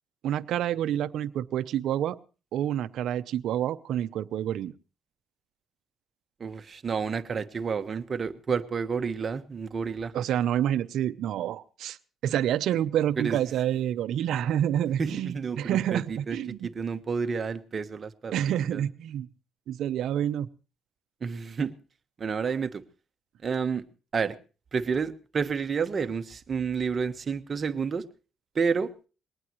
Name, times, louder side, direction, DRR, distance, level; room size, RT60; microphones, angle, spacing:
voice 1, 0.2-2.2 2.5-4.7 10.1-12.0 12.2-16.7 18.3-19.3 19.7-20.5, right 11 dB, 80° right, 12 dB, 0.7 m, -28 dB
voice 2, 6.4-10.2 13.2-13.4 15.0-16.4 16.6-18.8 21.2-21.7 22.2-22.8 23.4-23.8 24.1-24.4 24.7-28.1 28.5-28.9, right 5 dB, 40° right, 9 dB, 1.2 m, -30 dB
21.5 x 18.5 x 3.1 m, 0.35 s
cardioid pair, 90°, 0 cm